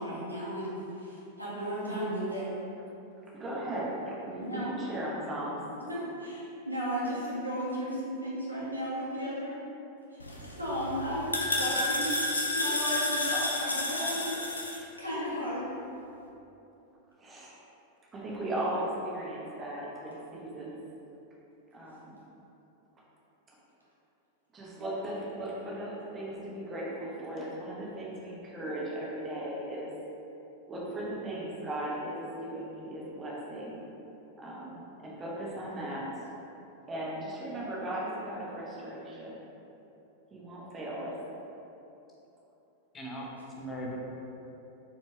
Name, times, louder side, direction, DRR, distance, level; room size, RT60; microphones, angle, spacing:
voice 1, 0.0-2.5 4.4-4.7 5.7-9.6 10.1-12.2 12.5-15.6, equal, 90° right, -8 dB, 1.1 m, -35 dB
voice 2, 3.3-5.6 17.2-17.5 18.1-20.8 21.7-22.2 24.5-29.9 30.7-33.8 34.4-36.1 36.9-39.4 40.3-41.2, right 1 dB, 20° right, -5 dB, 0.9 m, -37 dB
sound 1, 10.2-14.8, left 1 dB, 80° left, 0.4 m, -31 dB
voice 3, 42.9-44.0, equal, 20° left, -2 dB, 0.7 m, -39 dB
4.1 x 3.1 x 3.4 m, 2.9 s
figure-of-eight pair, 90°, 0 cm